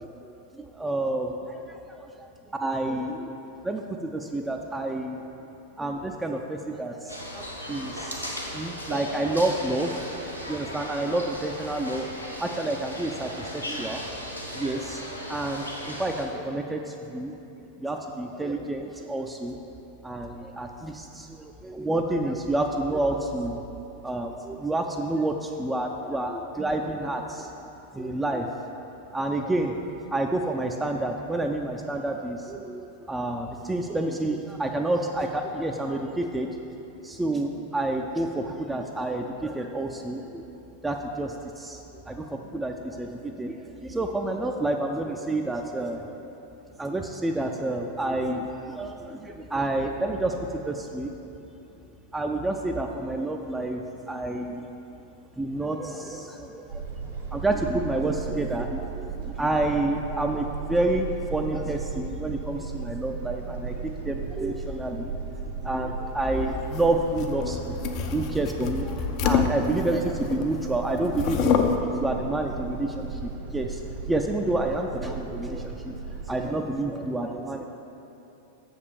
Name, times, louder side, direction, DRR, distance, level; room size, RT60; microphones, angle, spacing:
voice 1, 0.0-1.8 2.5-3.4 3.6-5.2 5.8-12.1 12.4-14.1 14.5-17.4 17.8-19.6 20.0-23.6 24.0-27.5 27.9-28.5 29.1-29.8 30.1-36.5 37.0-40.5 40.8-46.1 46.8-51.1 52.1-54.7 55.4-56.8 57.3-65.1 65.6-68.9 69.2-76.0 76.3-77.6, right 2 dB, 10° right, 2 dB, 0.5 m, -29 dB
sound 1, 7.1-16.3, equal, 90° left, 0.9 m, -37 dB
sound 2, 56.7-76.5, right 4 dB, 60° right, 1.3 m, -36 dB
sound 3, 66.4-70.6 70.9-71.8, left 7 dB, 40° left, 0.5 m, -27 dB
6.5 x 5.3 x 6.8 m, 2.9 s
figure-of-eight pair, 90°, 0 cm